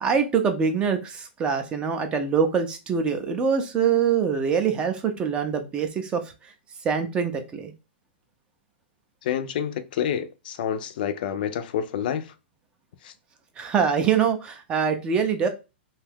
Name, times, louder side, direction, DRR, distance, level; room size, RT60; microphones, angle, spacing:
voice 1, 0.0-6.5 6.8-7.7 13.6-15.5, right 6 dB, 15° right, 0.4 m, -24 dB
voice 2, 9.2-12.3 13.0-13.1, left 9 dB, 50° left, 0.4 m, -28 dB
2.6 x 2.3 x 3.4 m
hypercardioid pair, 155°, 6 cm